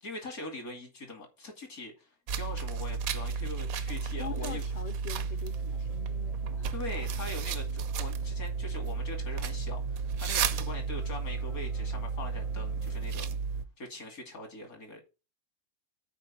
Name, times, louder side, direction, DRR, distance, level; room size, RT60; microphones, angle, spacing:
voice 1, 0.0-4.7 6.7-13.3 13.8-15.0, left 2 dB, 80° left, 3.1 m, -42 dB
sound 1, 2.3-13.7, right 5 dB, 75° right, 1.2 m, -33 dB
voice 2, 4.1-7.1, left 6 dB, 50° left, 0.5 m, -44 dB
sound 2, 5.5-13.4, right 4 dB, 45° right, 0.5 m, -52 dB
8.7 x 4.7 x 7.1 m
omnidirectional pair, 1.5 m